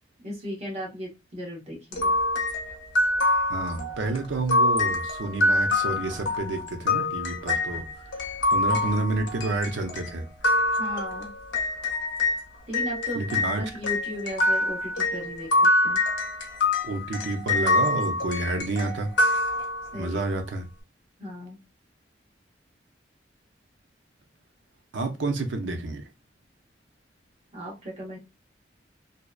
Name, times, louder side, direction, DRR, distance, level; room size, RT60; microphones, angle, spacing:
voice 1, 0.2-2.1 10.7-11.3 12.7-13.3 13.6-16.0 19.9-20.3 21.2-21.6 27.5-28.2, equal, 35° right, 0.9 m, -36 dB
sound 1, 1.9-12.4 12.7-20.1, left 2 dB, 85° left, 0.7 m, -25 dB
voice 2, 3.5-7.9 8.5-10.3 13.2-13.6 16.8-19.1 19.9-20.7 24.9-26.1, right 2 dB, 90° right, 0.5 m, -29 dB
2.7 x 2.0 x 2.3 m
head